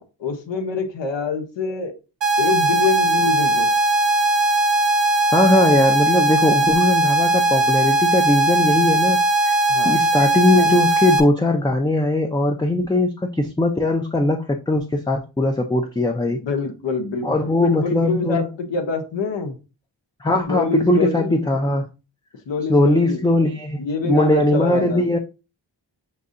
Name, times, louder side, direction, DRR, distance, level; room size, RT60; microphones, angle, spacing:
voice 1, 0.2-1.9 2.4-3.8 9.7-10.0 16.3-17.4 17.6-19.5 20.5-21.4 22.5-23.2 23.8-25.1, left 4 dB, 80° left, 0.9 m, -25 dB
sound 1, 2.2-11.2, right 1 dB, 75° right, 0.8 m, -19 dB
voice 2, 5.3-9.6 9.8-16.4 17.2-18.5 20.2-21.9 22.7-25.2, left 1 dB, 10° left, 0.4 m, -20 dB
6.6 x 2.6 x 2.5 m
wide cardioid pair, 75°, 43 cm